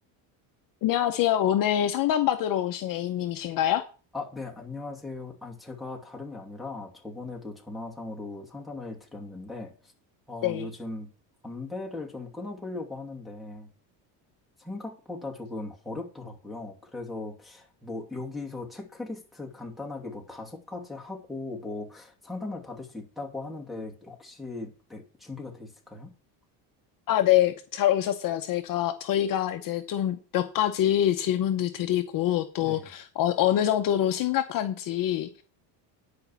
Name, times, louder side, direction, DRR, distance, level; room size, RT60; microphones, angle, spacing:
voice 1, 0.8-3.8 10.4-10.7 27.1-35.3, left 12 dB, 50° left, 0.8 m, -25 dB
voice 2, 4.1-9.9 10.3-11.1 11.4-13.7 14.6-26.1 32.6-32.9, left 2 dB, ahead, 2.6 m, -38 dB
10.5 x 5.2 x 7.2 m
cardioid pair, 130°, 44 cm